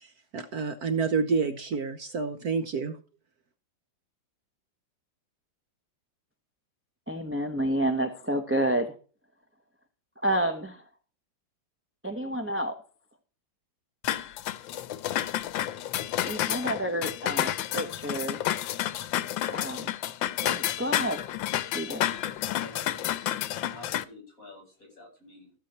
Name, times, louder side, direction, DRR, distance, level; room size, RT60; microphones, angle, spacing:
voice 1, 0.0-3.0, right 5 dB, 60° right, 9 dB, 1.3 m, -29 dB
voice 2, 7.1-8.9 10.2-10.8 12.0-12.8 16.3-18.4 19.5-19.9 20.4-21.2 21.7-22.0, right 1 dB, 10° right, 5 dB, 0.9 m, -29 dB
sound 1, 14.0-24.0, left 12 dB, 85° left, 1.5 m, -30 dB
voice 3, 21.8-23.2 23.7-25.5, left 2 dB, 45° left, 3 dB, 7.3 m, -49 dB
15.0 x 7.5 x 4.2 m, 0.38 s
omnidirectional pair, 2.1 m